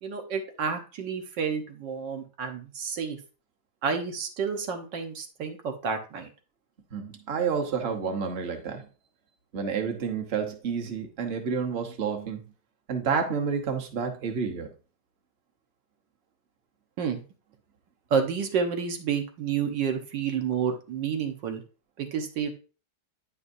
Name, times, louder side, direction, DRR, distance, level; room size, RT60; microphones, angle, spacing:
voice 1, 0.0-3.2 3.8-6.3 17.0-17.2 18.1-21.6 22.0-22.5, right 6 dB, 85° right, 5 dB, 1.8 m, -30 dB
voice 2, 6.9-8.9 9.5-12.4 12.9-14.7, right 6 dB, 40° right, 4 dB, 1.1 m, -29 dB
9.7 x 5.3 x 2.6 m, 0.35 s
omnidirectional pair, 1.9 m